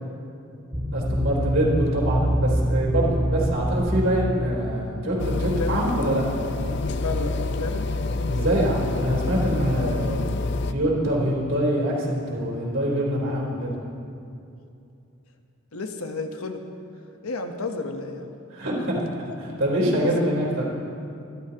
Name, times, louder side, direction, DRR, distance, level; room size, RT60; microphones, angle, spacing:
sound 1, 0.7-5.4, right 1 dB, 20° right, 1.8 m, -25 dB
voice 1, 0.9-6.2 8.3-10.3 10.7-13.7 18.5-20.6, right 1 dB, 65° right, -4 dB, 3.6 m, -25 dB
sound 2, 5.2-10.7, left 3 dB, 50° left, 0.5 m, -27 dB
voice 2, 5.5-5.9 7.0-7.9 15.7-16.6 17.2-18.3 20.2-20.3, left 3 dB, 85° left, 5 dB, 1.1 m, -32 dB
25.5 x 12.0 x 2.9 m, 2.6 s
head